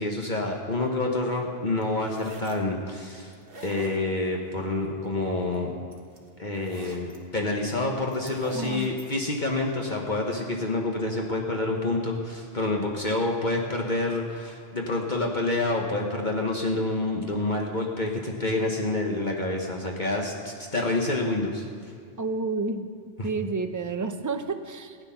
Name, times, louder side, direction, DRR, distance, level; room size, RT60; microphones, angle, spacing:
voice 1, 0.0-3.3 3.6-5.7 6.4-21.6 23.2-23.3, left 2 dB, 45° left, 0 dB, 1.2 m, -28 dB
sound 1, 1.8-2.6 3.3-4.3 5.5-5.6 5.9-7.2 8.1-9.1, right 3 dB, 55° right, 1.6 m, -44 dB
voice 2, 8.5-9.0 22.2-22.9 23.2-25.0, right 3 dB, 25° right, 7 dB, 0.4 m, -30 dB
15.0 x 9.7 x 5.7 m, 2.3 s
omnidirectional pair, 1.2 m